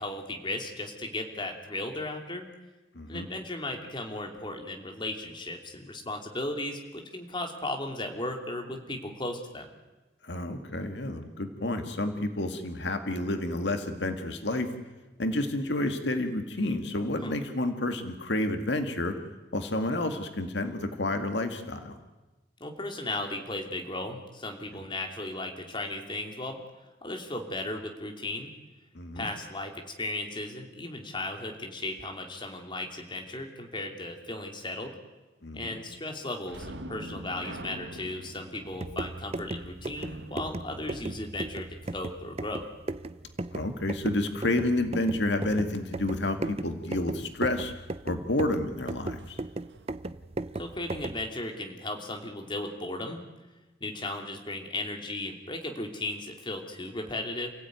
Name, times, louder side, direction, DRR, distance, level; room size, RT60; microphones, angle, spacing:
voice 1, 0.0-2.5 3.1-9.7 17.2-17.3 22.6-26.6 27.0-28.5 29.1-34.9 35.5-42.7 50.6-53.2 53.8-57.5, left 2 dB, 25° left, 3 dB, 2.9 m, -36 dB
voice 2, 3.0-3.3 10.2-14.7 15.2-19.1 19.5-21.9 28.9-29.3 35.4-35.8 43.5-47.7 48.0-49.4, left 1 dB, 75° left, 6 dB, 1.9 m, -30 dB
sound 1, 36.4-41.8 49.2-49.3 49.7-49.9, right 1 dB, 80° right, 1.4 m, -45 dB
sound 2, 38.7-51.3, right 2 dB, 35° right, 0.7 m, -37 dB
28.5 x 16.0 x 9.5 m, 1.1 s
head